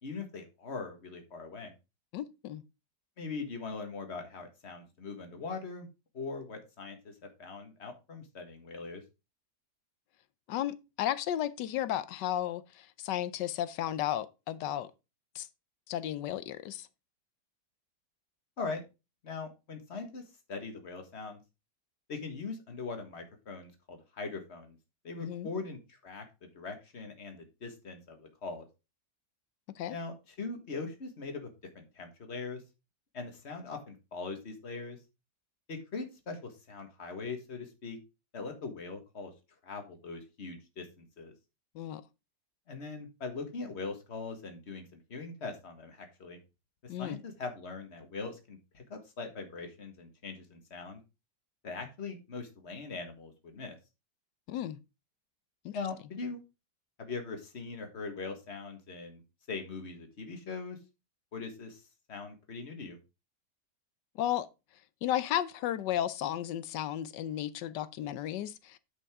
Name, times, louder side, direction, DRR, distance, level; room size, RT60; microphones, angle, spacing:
voice 1, 0.0-1.7 3.2-5.9 6.1-9.0 18.6-18.8 19.2-21.4 22.1-24.8 25.0-28.7 29.9-32.6 33.1-35.0 35.7-38.0 38.3-39.3 39.6-41.3 42.7-46.4 46.8-51.0 51.6-53.8 55.7-56.4 57.0-59.2 59.5-60.8 61.3-61.8 62.1-63.0, left 4 dB, 40° left, 1.8 m, -41 dB
voice 2, 2.1-2.6 10.5-14.9 15.3-15.5 15.9-16.9 25.2-25.5 29.8-30.0 41.7-42.0 46.9-47.2 54.5-54.8 55.6-55.8 64.2-64.5 65.0-68.8, left 12 dB, 85° left, 1.3 m, -34 dB
9.8 x 5.4 x 3.6 m
omnidirectional pair, 1.8 m